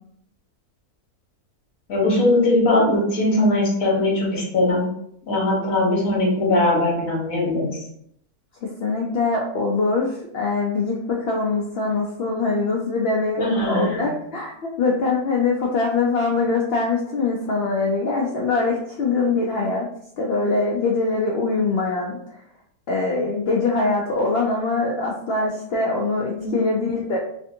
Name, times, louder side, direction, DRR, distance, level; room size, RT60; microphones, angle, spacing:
voice 1, 1.9-4.9 5.2-7.8 13.4-14.0 26.4-26.5, left 2 dB, 65° left, -3 dB, 1.4 m, -20 dB
voice 2, 8.6-19.9 20.2-22.2 22.9-27.2, left 3 dB, 90° left, -1 dB, 0.5 m, -23 dB
3.3 x 2.5 x 2.6 m, 0.70 s
omnidirectional pair, 1.6 m